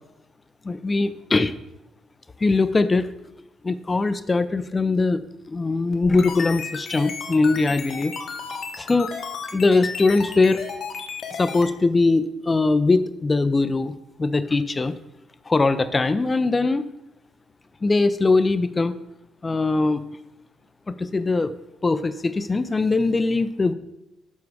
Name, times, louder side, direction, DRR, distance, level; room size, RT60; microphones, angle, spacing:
voice 1, 0.6-1.5 2.4-3.1 3.6-5.2 5.5-8.1 8.8-9.1 9.5-10.6 11.4-14.9 15.5-16.8 17.8-18.9 19.4-20.0 21.0-21.5 21.8-23.7, left 3 dB, 25° left, 12 dB, 0.5 m, -21 dB
sound 1, 5.9-11.7, left 5 dB, 60° left, 1.0 m, -33 dB
7.3 x 4.7 x 4.8 m, 0.89 s
cardioid pair, 90°, 0 cm